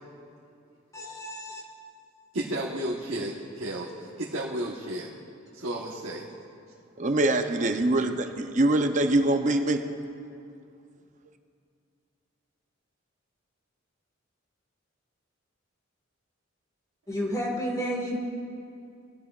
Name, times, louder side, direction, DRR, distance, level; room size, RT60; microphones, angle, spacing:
voice 1, 0.9-1.6 17.1-18.2, equal, 15° left, -2 dB, 1.8 m, -31 dB
voice 2, 2.3-5.1 5.5-6.2, right 1 dB, 85° right, -4 dB, 1.2 m, -33 dB
voice 3, 7.0-9.8, right 2 dB, 40° right, 7 dB, 0.6 m, -24 dB
20.0 x 15.5 x 2.4 m, 2.5 s
head